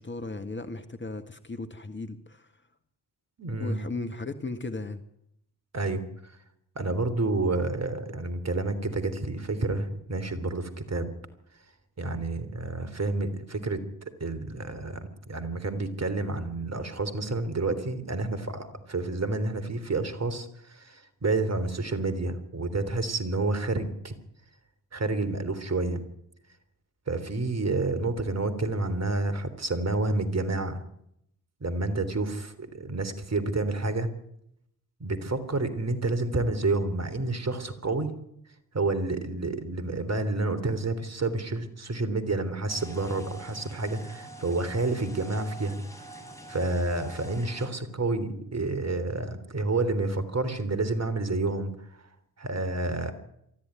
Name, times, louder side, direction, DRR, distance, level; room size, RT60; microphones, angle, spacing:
voice 1, 0.0-2.5 3.6-5.0, left 3 dB, 25° left, 8 dB, 1.8 m, -36 dB
voice 2, 3.4-3.8 5.7-6.3 6.8-11.1 12.0-24.2 24.9-26.0 27.1-30.8 31.6-34.1 35.0-38.2 38.7-45.8 46.5-51.8 52.4-53.1, right 2 dB, 30° right, 11 dB, 3.5 m, -29 dB
sound 1, 42.7-47.7, right 1 dB, 5° left, 6.7 m, -45 dB
23.5 x 14.0 x 9.7 m, 0.78 s
hypercardioid pair, 45°, 48 cm